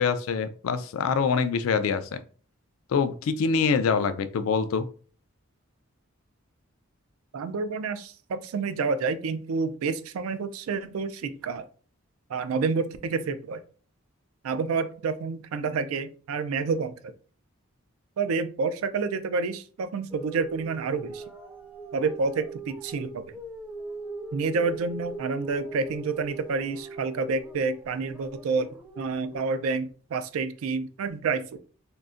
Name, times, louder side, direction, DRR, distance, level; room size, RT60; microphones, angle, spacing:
voice 1, 0.0-2.1 2.9-4.9, left 5 dB, 80° left, 11 dB, 0.3 m, -25 dB
voice 2, 7.3-11.6 12.3-13.6 14.4-16.9 18.2-21.2 21.9-23.3 24.3-28.7 29.0-31.6, right 4 dB, 85° right, 10 dB, 0.4 m, -29 dB
sound 1, 20.1-29.4, right 3 dB, 10° right, 0.4 m, -41 dB
3.8 x 2.1 x 2.4 m, 0.42 s
head